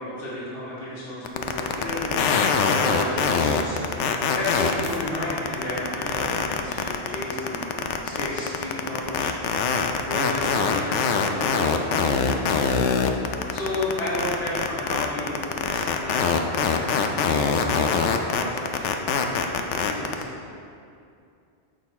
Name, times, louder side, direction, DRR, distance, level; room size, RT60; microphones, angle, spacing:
voice 1, 0.0-3.8 4.3-7.7 8.0-9.4 9.7-11.7 13.5-16.3 16.6-20.2, left 1 dB, 55° left, -8 dB, 1.8 m, -33 dB
sound 1, 1.2-20.2, left 6 dB, 90° left, 0.9 m, -23 dB
6.4 x 6.2 x 4.1 m, 2.5 s
omnidirectional pair, 1.2 m